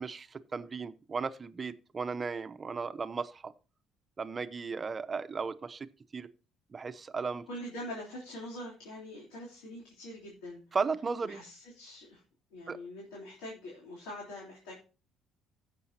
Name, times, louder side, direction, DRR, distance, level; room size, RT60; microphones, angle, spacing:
voice 1, 0.0-3.5 4.2-5.9 6.1-6.3 6.7-7.5 10.7-11.4 12.7-12.8, right 5 dB, 35° right, 13 dB, 0.8 m, -35 dB
voice 2, 7.5-10.6 11.2-12.2 12.5-14.8, left 1 dB, 80° left, -3 dB, 3.5 m, -44 dB
16.5 x 7.0 x 2.8 m, 0.35 s
hypercardioid pair, 60°, 0 cm